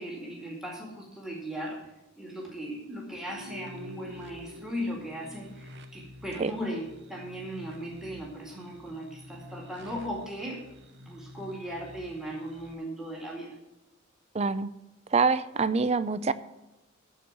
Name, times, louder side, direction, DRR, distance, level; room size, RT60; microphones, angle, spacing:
voice 1, 0.0-1.8 2.2-10.6 11.0-13.6, equal, 5° right, -1 dB, 2.2 m, -37 dB
sound 1, 3.2-12.7, left 1 dB, 55° right, 1.0 m, -50 dB
Guitar, 3.3-6.6, left 1 dB, 80° right, 1.3 m, -48 dB
voice 2, 14.3-14.7 15.1-16.3, right 4 dB, 30° right, 15 dB, 0.5 m, -25 dB
13.5 x 4.7 x 8.7 m, 0.98 s
head